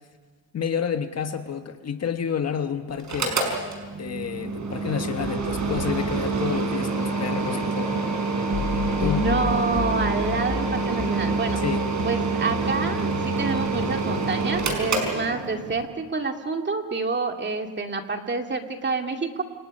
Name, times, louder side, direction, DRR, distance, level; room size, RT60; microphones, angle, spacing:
voice 1, 0.5-3.5 4.0-8.1 9.0-9.2 11.6-11.8, left 7 dB, 40° left, 7 dB, 1.4 m, -29 dB
Mechanical fan, 3.0-15.8, right 4 dB, 45° right, 5.5 m, -27 dB
sound 1, 8.5-14.9, left 7 dB, 70° left, 3.9 m, -34 dB
voice 2, 9.0-11.6 12.0-19.4, right 3 dB, 25° right, 4 dB, 2.4 m, -27 dB
29.0 x 27.5 x 5.5 m, 1.4 s
cardioid pair, 140°, 39 cm